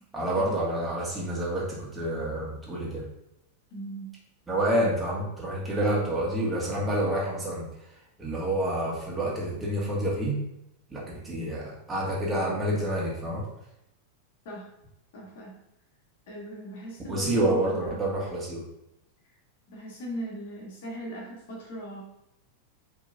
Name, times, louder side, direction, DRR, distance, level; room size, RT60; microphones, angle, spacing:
voice 1, 0.1-3.0 4.5-7.7 8.2-10.4 10.9-13.4 17.1-18.6, right 1 dB, 10° right, -5 dB, 2.1 m, -28 dB
voice 2, 3.7-4.1 14.5-14.7 15.1-15.5 16.3-17.8 19.7-22.0, right 1 dB, 55° left, -2 dB, 1.9 m, -39 dB
10.0 x 3.7 x 2.7 m, 0.83 s
figure-of-eight pair, 90°, 0 cm